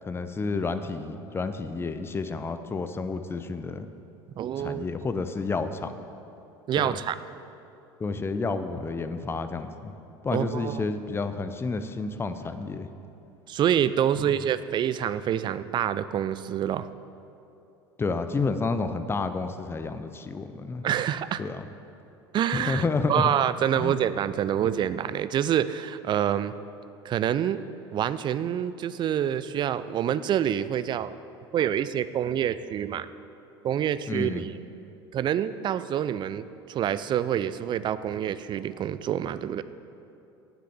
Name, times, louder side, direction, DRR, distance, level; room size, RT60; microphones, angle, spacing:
voice 1, 0.0-3.9 4.6-6.0 6.8-7.0 8.0-9.9 10.2-12.9 14.2-14.3 18.0-20.9 21.4-21.7 22.5-23.3 23.8-24.0 34.1-34.5, left 4 dB, 15° left, 10 dB, 0.6 m, -30 dB
voice 2, 4.4-4.9 6.7-7.2 10.3-10.8 13.5-16.9 20.8-21.4 22.3-26.5 27.0-31.1 31.5-33.1 33.6-34.5 35.1-39.6, right 10 dB, 30° right, 14 dB, 0.4 m, -27 dB
9.5 x 7.7 x 7.3 m, 2.8 s
figure-of-eight pair, 70°, 14 cm